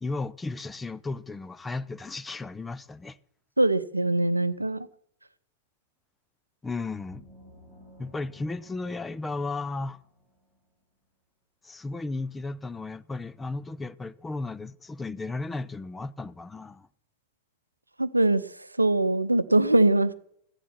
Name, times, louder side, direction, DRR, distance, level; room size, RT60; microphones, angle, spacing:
voice 1, 0.0-3.2 6.6-7.2 8.0-10.0 11.6-16.9, left 3 dB, 10° left, 0.5 m, -34 dB
voice 2, 3.6-4.9 18.0-18.4 18.8-20.1, right 2 dB, 85° right, 0.6 m, -22 dB
sound 1, 7.1-10.7, left 1 dB, 25° left, 4.9 m, -54 dB
14.5 x 11.0 x 5.9 m
figure-of-eight pair, 90°, 0 cm